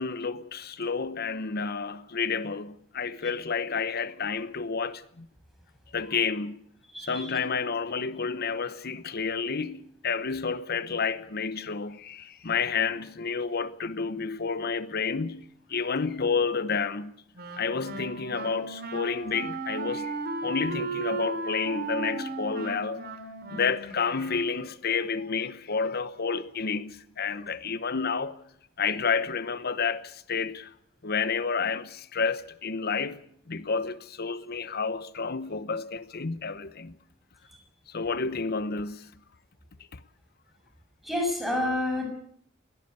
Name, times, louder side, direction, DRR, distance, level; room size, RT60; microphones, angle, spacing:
voice 1, 0.0-5.3 5.9-6.6 7.1-17.1 17.6-23.0 23.5-28.4 28.8-30.7 31.0-33.2 33.5-37.0 37.9-39.1 39.9-40.0, left 5 dB, 55° left, 0.9 m, -30 dB
voice 2, 6.9-7.3 41.0-42.1, left 1 dB, ahead, 6.4 m, -28 dB
Wind instrument woodwind instrument, 17.3-24.7, right 3 dB, 55° right, 3.4 m, -36 dB
21.5 x 17.5 x 8.2 m
head